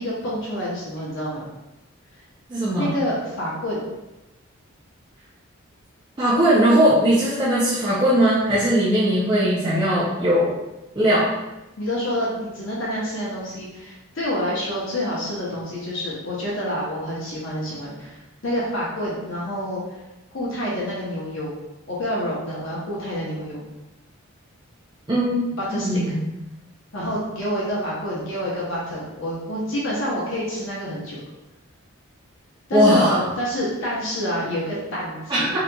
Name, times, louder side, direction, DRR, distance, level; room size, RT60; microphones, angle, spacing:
voice 1, 0.0-1.5 2.8-3.8 11.8-20.0 20.3-21.6 21.9-23.6 25.6-26.2 26.9-31.2 32.7-35.5, equal, 60° left, -6 dB, 0.8 m, -27 dB
voice 2, 2.5-2.9 6.2-10.5 10.9-11.3 25.1-26.3 32.7-33.2 35.3-35.6, equal, 20° right, -9 dB, 0.5 m, -19 dB
4.0 x 2.8 x 2.2 m, 1.0 s
head